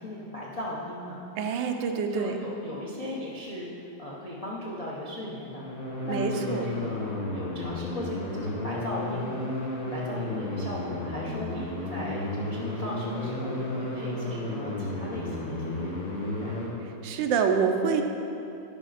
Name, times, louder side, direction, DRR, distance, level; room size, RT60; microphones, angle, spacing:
voice 1, 0.0-1.2 2.1-5.6 6.0-9.3 9.9-16.6, left 1 dB, 70° left, -4 dB, 0.3 m, -37 dB
voice 2, 1.4-2.3 6.0-6.6 17.0-18.0, right 6 dB, 80° right, 5 dB, 1.3 m, -26 dB
sound 1, 5.3-16.7, left 1 dB, 50° left, 1.5 m, -33 dB
11.0 x 5.0 x 3.9 m, 2.8 s
omnidirectional pair, 2.0 m